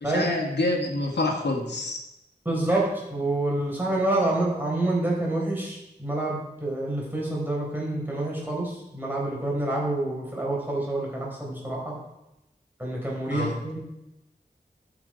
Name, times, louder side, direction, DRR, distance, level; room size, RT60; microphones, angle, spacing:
voice 1, 0.0-2.0 13.3-13.5, left 2 dB, 85° left, -1 dB, 1.6 m, -27 dB
voice 2, 2.4-12.0 12.8-13.8, right 2 dB, 10° right, -4 dB, 4.2 m, -27 dB
12.0 x 6.3 x 5.1 m, 0.91 s
wide cardioid pair, 65°, 17 cm